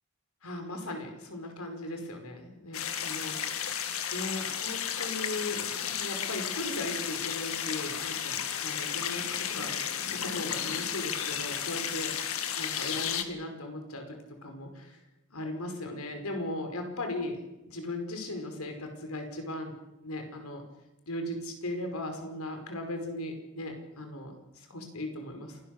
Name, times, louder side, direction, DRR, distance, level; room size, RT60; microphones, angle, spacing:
voice 1, 0.4-3.3 4.1-12.1 12.6-14.2 14.4-15.0 15.3-17.4 17.7-19.7 20.0-20.6 21.1-25.6, left 1 dB, 90° left, 5 dB, 5.1 m, -38 dB
sound 1, 2.7-13.2, left 8 dB, 70° left, 2.0 m, -33 dB
28.0 x 18.5 x 6.7 m, 0.96 s
head